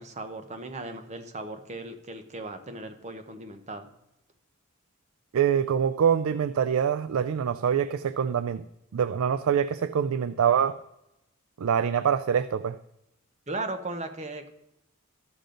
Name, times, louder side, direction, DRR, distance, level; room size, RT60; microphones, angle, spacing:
voice 1, 0.0-3.9 13.5-14.5, right 2 dB, 30° right, 7 dB, 0.8 m, -37 dB
voice 2, 5.3-8.6 8.9-10.8 11.6-12.8, right 8 dB, 65° right, 13 dB, 0.3 m, -25 dB
13.0 x 6.8 x 3.8 m, 0.85 s
head